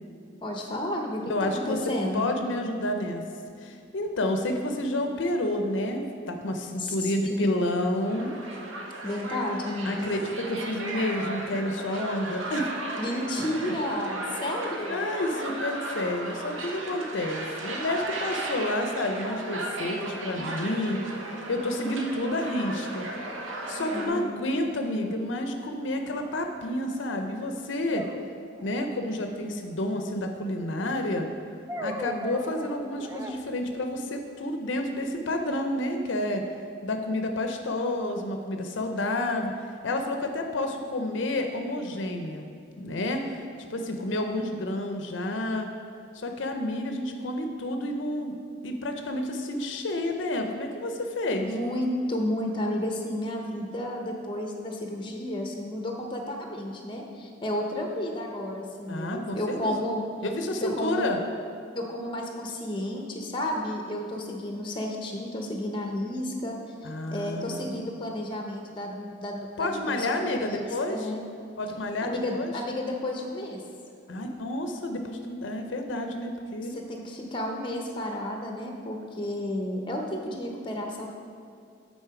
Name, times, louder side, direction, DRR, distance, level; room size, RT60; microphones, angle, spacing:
voice 1, 0.4-2.2 6.8-7.6 9.0-10.1 13.0-15.1 23.7-24.3 51.4-60.0 60.6-61.1 61.7-71.2 72.0-73.6 76.7-81.1, left 1 dB, 25° left, 1 dB, 0.7 m, -32 dB
voice 2, 1.3-1.8 2.1-3.2 3.6-8.4 9.8-12.7 14.9-21.0 21.5-23.1 23.7-28.1 28.6-31.3 31.8-36.4 36.8-39.5 39.8-42.5 42.8-43.4 43.7-45.7 46.1-48.3 48.6-51.5 58.9-59.7 60.2-61.2 66.8-67.8 69.6-71.1 71.6-72.5 74.1-76.8, left 1 dB, 75° left, 5 dB, 0.6 m, -30 dB
sound 1, 8.0-24.1, right 2 dB, 80° right, 0.7 m, -35 dB
sound 2, 26.2-26.3 28.0-28.9 31.7-33.4, right 1 dB, 15° right, 0.3 m, -37 dB
8.8 x 4.2 x 4.8 m, 2.4 s
head